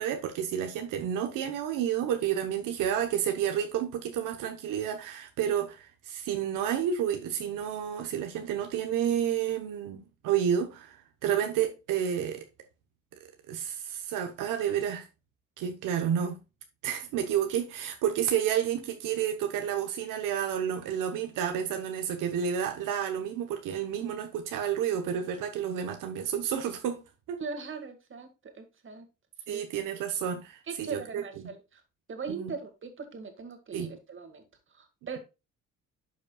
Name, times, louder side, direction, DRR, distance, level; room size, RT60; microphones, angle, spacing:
voice 1, 0.0-12.4 13.5-15.1 15.6-16.4 16.8-27.0 27.3-27.4 29.5-31.2 32.3-32.5 33.7-33.9, right 9 dB, 90° right, 1.0 m, -30 dB
voice 2, 27.4-29.1 29.5-29.6 30.7-31.8 32.1-35.2, right 5 dB, 40° right, 1.9 m, -40 dB
11.5 x 5.2 x 2.3 m
cardioid pair, 100°, 31 cm